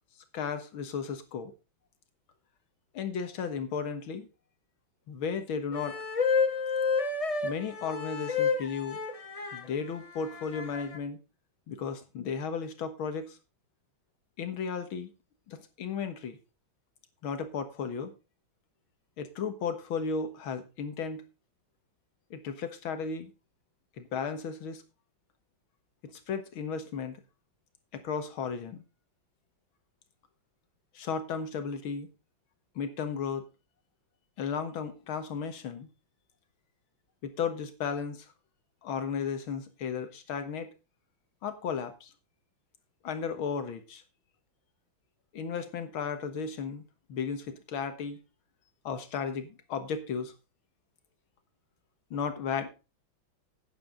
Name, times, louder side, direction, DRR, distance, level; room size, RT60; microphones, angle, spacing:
voice 1, 0.3-1.5 2.9-4.3 5.1-6.0 7.4-9.0 9.5-11.2 11.7-13.4 14.4-15.1 15.5-16.4 17.2-18.1 19.2-21.2 22.3-23.3 24.0-24.8 26.1-27.2 27.9-28.8 30.9-32.1 32.8-33.4 34.4-35.9 37.2-38.3 38.8-40.7 41.4-42.1 43.0-44.0 45.3-46.8 47.1-48.2 48.8-50.3 52.1-52.7, left 6 dB, 90° left, 9 dB, 2.2 m, -34 dB
sound 1, 5.7-9.6 10.4-11.0, left 5 dB, 30° left, 0.6 m, -29 dB
11.5 x 9.2 x 3.8 m, 0.30 s
omnidirectional pair, 2.2 m